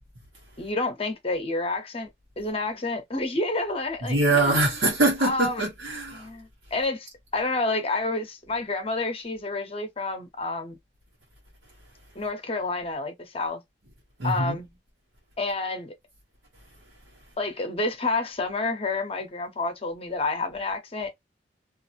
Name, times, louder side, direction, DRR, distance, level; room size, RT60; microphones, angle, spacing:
voice 1, 0.6-2.1 2.4-4.2 5.2-5.6 6.1-7.1 7.3-10.8 12.1-13.6 14.2-14.7 15.4-15.9 17.4-21.1, left 2 dB, 30° left, 0.7 m, -29 dB
voice 2, 4.1-6.3 14.2-14.6, right 2 dB, 85° right, 1.0 m, -23 dB
2.6 x 2.4 x 2.7 m
head